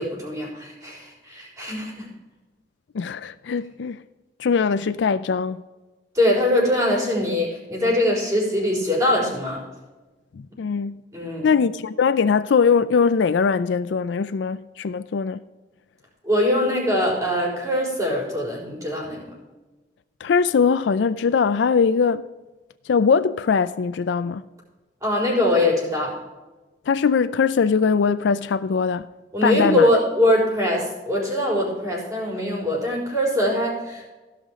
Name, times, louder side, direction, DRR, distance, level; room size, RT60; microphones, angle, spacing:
voice 1, 0.0-2.1 6.1-9.6 10.5-10.6 11.1-11.5 16.2-19.3 25.0-26.2 29.3-34.1, left 1 dB, 20° right, 4.3 m, -22 dB
voice 2, 2.9-4.0 4.4-5.6 10.3-11.0 11.4-15.4 20.2-22.2 22.9-24.4 26.9-29.1 29.4-29.9, left 5 dB, 85° left, 0.4 m, -21 dB
16.0 x 5.7 x 5.1 m
head